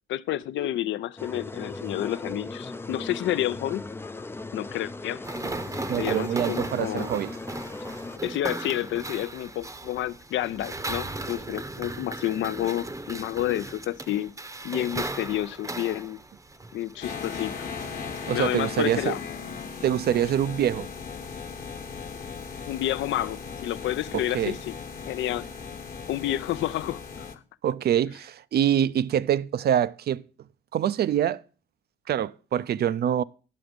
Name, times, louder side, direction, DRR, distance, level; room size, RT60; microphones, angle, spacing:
voice 1, 0.1-3.8 4.5-5.2 5.9-7.1 8.2-14.3 14.6-16.2 16.7-17.7 18.3-19.2 22.7-24.7 25.1-25.5 26.1-27.3, left 13 dB, 70° left, 0.5 m, -30 dB
sound 1, 1.2-8.2, left 3 dB, 10° left, 0.4 m, -38 dB
sound 2, 5.2-18.5, right 2 dB, 15° right, 0.7 m, -37 dB
voice 2, 5.9-7.4 18.3-19.2 19.8-20.9 24.1-24.6 27.6-30.2 30.7-31.4 32.1-33.2, right 10 dB, 55° right, 0.4 m, -25 dB
sound 3, 17.0-27.3, left 6 dB, 45° left, 1.2 m, -38 dB
9.4 x 7.0 x 5.1 m
cardioid pair, 90°, 20 cm